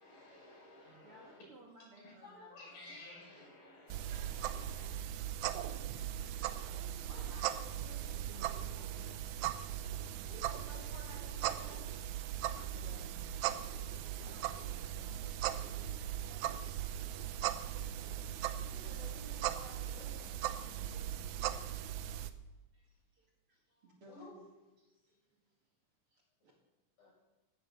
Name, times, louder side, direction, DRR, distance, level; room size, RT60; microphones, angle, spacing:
voice 1, 0.0-1.4 2.0-2.1 2.6-4.9, left 1 dB, 75° left, -4 dB, 7.9 m, -55 dB
voice 2, 1.0-2.9 8.1-9.5 12.2-17.2 20.4-22.0 22.5-24.4 24.8-25.7 26.1-26.5, right 2 dB, 45° right, -1 dB, 2.9 m, -61 dB
voice 3, 2.2-3.5 7.0-8.1 10.3-12.1 18.6-20.4 24.0-24.4 27.0-27.1, left 2 dB, 45° left, -4 dB, 8.1 m, -54 dB
sound 1, 3.9-22.3, right 11 dB, 75° right, 1.8 m, -39 dB
16.5 x 10.5 x 7.3 m, 1.1 s
omnidirectional pair, 4.0 m